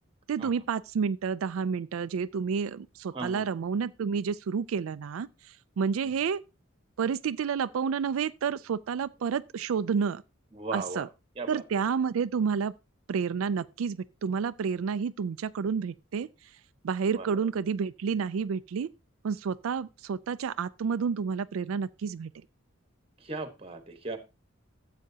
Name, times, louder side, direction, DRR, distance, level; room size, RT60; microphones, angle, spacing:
voice 1, 0.3-6.4 7.0-10.2 10.7-11.1 11.5-12.7 13.1-16.6 16.8-18.9 19.2-22.3, right 6 dB, 90° right, 0.4 m, -30 dB
voice 2, 3.1-3.4 6.0-6.1 10.5-11.0 11.4-11.6 17.1-17.3 23.2-24.2, right 3 dB, 30° right, 1.3 m, -37 dB
13.0 x 7.8 x 2.8 m
head